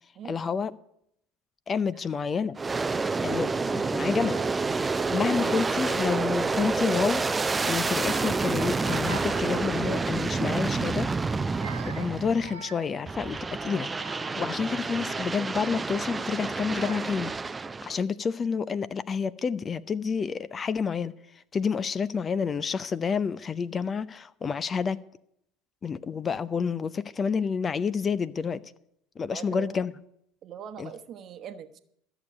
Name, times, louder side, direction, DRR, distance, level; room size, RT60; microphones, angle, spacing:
voice 1, 0.3-0.7 1.7-2.6 3.2-4.4 4.8-11.1 11.9-17.3 17.8-25.0 25.8-28.6 29.2-29.9 30.8-30.9, left 6 dB, 30° left, 16 dB, 0.6 m, -29 dB
Aircraft, 2.5-12.6 13.1-18.0, right 4 dB, 20° right, 0.5 m, -28 dB
Child speech kid speaking / Crying sobbing, 4.0-4.6 5.2-5.9 6.2-7.0 7.5-10.3 10.7-10.9 11.4-14.6 15.2-15.6 16.3-16.4 16.7-17.4, right 6 dB, 85° right, 1.1 m, -46 dB
voice 2, 29.3-29.9 30.4-31.8, right 8 dB, 50° right, 10 dB, 1.1 m, -42 dB
13.5 x 7.0 x 9.5 m, 0.73 s
hypercardioid pair, 70°, 0 cm